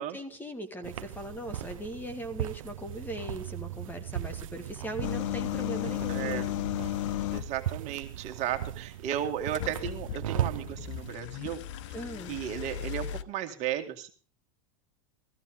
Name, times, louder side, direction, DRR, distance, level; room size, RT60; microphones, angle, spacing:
voice 1, 0.0-6.5 11.9-12.4, equal, 10° left, 9 dB, 1.9 m, -39 dB
sound 1, 0.8-11.2, right 12 dB, 80° right, 0.8 m, -38 dB
sound 2, 5.0-7.6 9.5-13.2, left 13 dB, 65° left, 0.9 m, -34 dB
voice 2, 6.1-6.5 7.3-11.6 12.3-14.1, right 11 dB, 45° right, 6 dB, 2.0 m, -34 dB
16.0 x 15.0 x 3.7 m, 0.38 s
hypercardioid pair, 120°, 17 cm